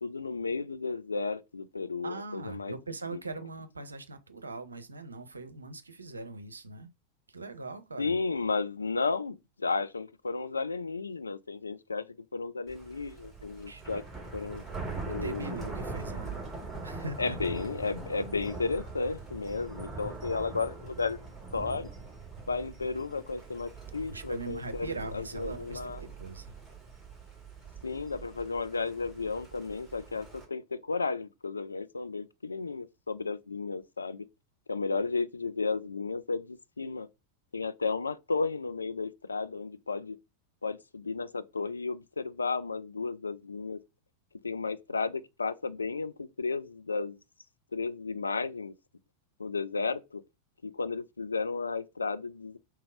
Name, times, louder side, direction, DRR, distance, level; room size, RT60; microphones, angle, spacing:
voice 1, 0.0-2.7 3.1-3.2 8.0-12.1 12.3-14.0 14.3-14.6 15.1-15.5 17.2-21.2 21.5-21.9 22.5-26.0 27.8-34.3 34.7-37.1 37.5-40.2 40.6-43.8 44.4-47.2 47.7-48.7 49.4-50.2 50.6-52.6, left 4 dB, 75° left, 0.3 m, -33 dB
voice 2, 2.0-6.9 7.3-8.2 13.7-13.8 15.0-16.4 16.8-17.4 24.1-26.5, right 3 dB, 80° right, 0.6 m, -41 dB
Thunder, 12.7-30.4, right 3 dB, 5° right, 2.2 m, -42 dB
3.6 x 2.9 x 4.8 m
figure-of-eight pair, 90°, 0 cm